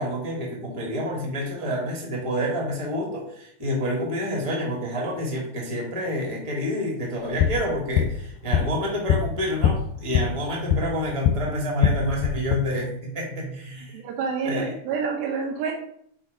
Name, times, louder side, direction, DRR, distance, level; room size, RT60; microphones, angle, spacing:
voice 1, 0.0-14.0 14.4-14.7, equal, 15° right, -1 dB, 1.0 m, -28 dB
sound 1, 7.2-11.4 11.7-12.6, left 8 dB, 80° left, 2.2 m, -24 dB
voice 2, 13.9-15.7, right 5 dB, 90° right, 1 dB, 2.6 m, -28 dB
6.0 x 4.5 x 5.2 m, 0.67 s
omnidirectional pair, 4.1 m